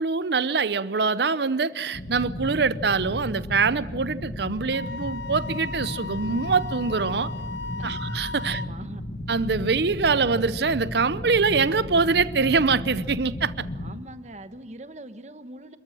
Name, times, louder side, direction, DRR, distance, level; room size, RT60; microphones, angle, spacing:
voice 1, 0.0-7.3 7.8-8.6 9.3-13.6, right 4 dB, 70° right, 0.7 m, -24 dB
sound 1, 1.9-14.0, left 1 dB, 60° left, 1.8 m, -34 dB
Wind instrument woodwind instrument, 4.7-8.7, left 4 dB, 80° left, 0.8 m, -37 dB
voice 2, 8.4-9.0 13.7-15.8, right 1 dB, 40° right, 1.1 m, -42 dB
27.0 x 14.0 x 10.0 m
head